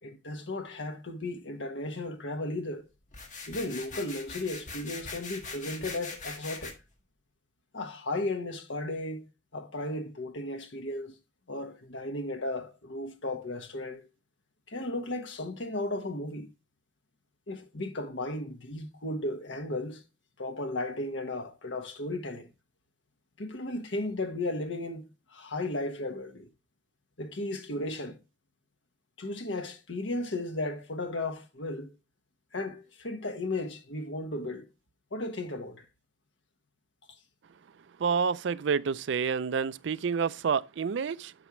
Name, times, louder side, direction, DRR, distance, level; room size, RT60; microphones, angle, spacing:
voice 1, 0.0-2.9 3.5-6.7 7.7-11.1 11.5-14.1 14.7-16.5 17.5-20.0 20.4-22.5 23.4-25.0 25.3-26.5 27.2-28.2 29.2-31.9 32.5-34.7 35.1-35.9, left 2 dB, 80° left, 1.4 m, -35 dB
sound 1, 3.1-6.7, left 4 dB, 40° left, 1.6 m, -41 dB
voice 2, 38.0-41.3, right 6 dB, 75° right, 0.4 m, -28 dB
9.0 x 6.3 x 3.0 m
head